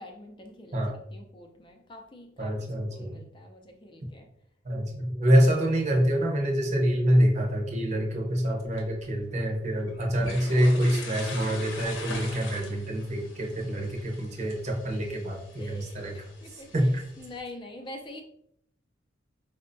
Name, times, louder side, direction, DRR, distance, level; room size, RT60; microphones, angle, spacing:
voice 1, 0.0-4.3 13.6-13.7 15.6-18.2, left 1 dB, 25° left, 3 dB, 0.4 m, -46 dB
voice 2, 2.4-3.2 4.6-16.2 16.5-17.0, equal, 35° right, 0 dB, 0.6 m, -26 dB
sound 1, 8.5-17.4, left 2 dB, 90° left, 0.8 m, -43 dB
4.4 x 2.1 x 2.5 m, 0.72 s
head